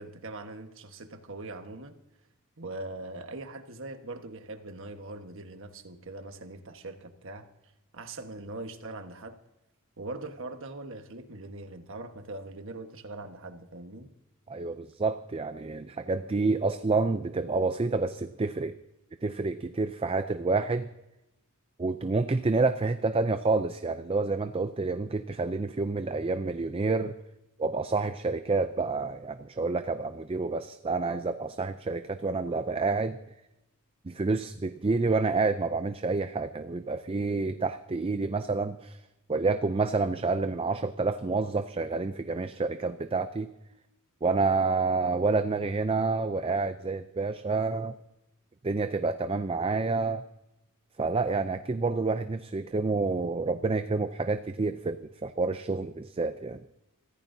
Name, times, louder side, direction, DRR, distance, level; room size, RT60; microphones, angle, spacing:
voice 1, 0.0-2.0 2.6-7.5 7.9-9.4 10.0-14.1, right 2 dB, 60° right, 6 dB, 1.4 m, -41 dB
voice 2, 14.5-18.8 19.2-20.9 21.8-27.2 27.6-33.2 34.0-39.0 39.3-43.5 44.2-47.9 48.6-50.2 51.0-56.6, right 3 dB, 25° right, 10 dB, 0.5 m, -28 dB
25.0 x 15.0 x 2.7 m, 0.93 s
head